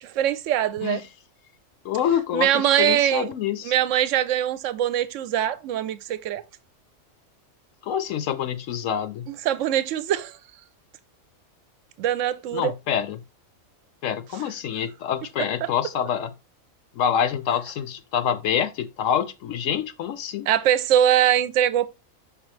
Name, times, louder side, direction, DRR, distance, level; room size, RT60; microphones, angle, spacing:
voice 1, 0.0-1.0 2.3-3.3 3.6-6.4 9.3-10.4 12.0-12.7 20.5-21.9, right 11 dB, 70° right, 0.9 m, -22 dB
voice 2, 1.8-3.7 7.8-9.3 12.5-13.2 14.0-16.3 16.9-20.5, left 9 dB, 70° left, 0.9 m, -26 dB
6.1 x 4.9 x 3.2 m
omnidirectional pair, 1.5 m